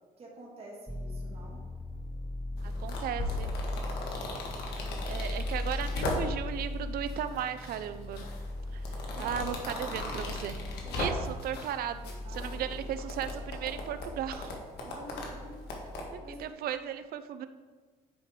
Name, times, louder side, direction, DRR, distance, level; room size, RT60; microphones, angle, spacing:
voice 1, 0.2-1.6 9.1-10.3 10.8-11.3 12.2-12.6 14.8-15.5 16.2-16.4, right 2 dB, 35° right, -3 dB, 1.8 m, -46 dB
sound 1, 0.9-16.5, left 2 dB, 5° left, 0.5 m, -39 dB
sound 2, 2.6-6.6 7.1-7.8 8.1-11.7 12.0-16.0, left 2 dB, 80° left, 1.6 m, -38 dB
voice 2, 2.6-3.5 5.1-8.2 8.7-10.5 10.9-14.6 16.1-17.5, right 10 dB, 60° right, 10 dB, 0.5 m, -36 dB
9.5 x 4.9 x 3.7 m, 1.4 s
cardioid pair, 110°, 17 cm